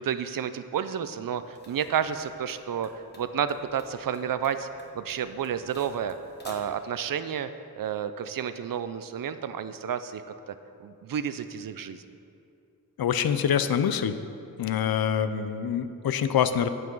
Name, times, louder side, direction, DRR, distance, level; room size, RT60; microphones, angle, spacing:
voice 1, 0.0-2.9 3.2-4.7 4.9-6.2 6.4-7.5 7.8-10.2 10.8-12.0, right 8 dB, 65° right, 12 dB, 0.5 m, -30 dB
sound 1, 1.4-6.8, left 1 dB, 30° left, 1.1 m, -52 dB
voice 2, 13.0-14.2 14.6-16.7, left 8 dB, 75° left, 11 dB, 0.5 m, -25 dB
8.1 x 7.6 x 5.4 m, 2.7 s
wide cardioid pair, 125°, 36 cm